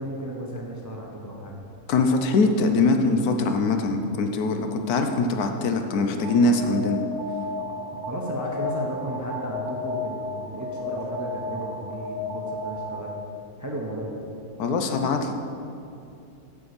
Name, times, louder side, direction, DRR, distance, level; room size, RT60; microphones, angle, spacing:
voice 1, 0.0-1.6 8.0-13.1 13.6-14.2, right 1 dB, 15° right, -1 dB, 0.6 m, -34 dB
voice 2, 1.9-7.0 14.6-15.3, left 3 dB, 75° left, 5 dB, 1.2 m, -22 dB
Alarm, 6.2-13.3, left 2 dB, 75° right, 1.3 m, -33 dB
8.3 x 5.2 x 6.6 m, 2.7 s
omnidirectional pair, 1.6 m